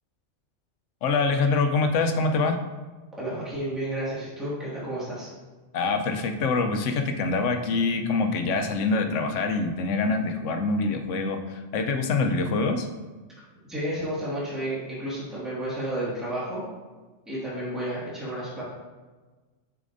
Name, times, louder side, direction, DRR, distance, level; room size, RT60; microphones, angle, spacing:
voice 1, 1.0-2.6 5.7-12.9, left 3 dB, 90° left, 6 dB, 1.0 m, -25 dB
voice 2, 3.2-5.3 13.7-16.7 17.3-18.6, right 1 dB, ahead, -9 dB, 1.8 m, -31 dB
8.2 x 4.9 x 2.6 m, 1.3 s
omnidirectional pair, 1.2 m